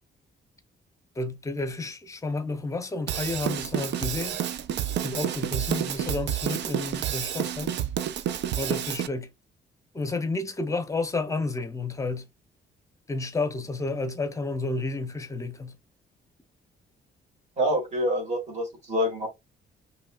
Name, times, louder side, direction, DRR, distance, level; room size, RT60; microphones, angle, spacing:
voice 1, 1.2-4.4 5.0-7.8 8.6-9.3 9.9-12.3 13.1-15.8, left 3 dB, 15° left, 0.7 m, -31 dB
Drum kit / Drum, 3.1-9.1, right 10 dB, 80° right, 0.5 m, -29 dB
voice 2, 17.6-19.3, equal, 40° right, 2.6 m, -26 dB
5.3 x 3.2 x 2.4 m
cardioid pair, 150°, 18 cm